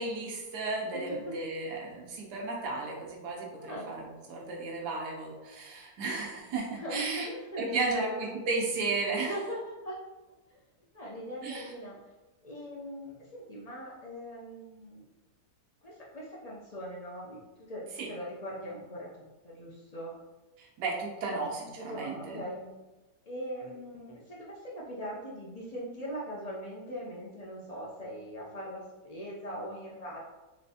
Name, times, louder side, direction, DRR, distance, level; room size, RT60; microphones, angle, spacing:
voice 1, 0.0-7.3 7.6-9.3 11.4-11.7 18.0-18.1 20.6-22.4, right 3 dB, 80° right, -2 dB, 1.4 m, -34 dB
voice 2, 0.9-1.4 3.6-3.9 6.8-8.3 9.1-10.0 10.5-10.6 10.9-12.0 12.4-15.0 15.8-17.4 17.7-20.1 21.2-21.4 21.8-22.8 23.3-30.2, equal, 85° left, -5 dB, 0.3 m, -40 dB
4.3 x 3.3 x 2.7 m, 1.1 s
omnidirectional pair, 1.7 m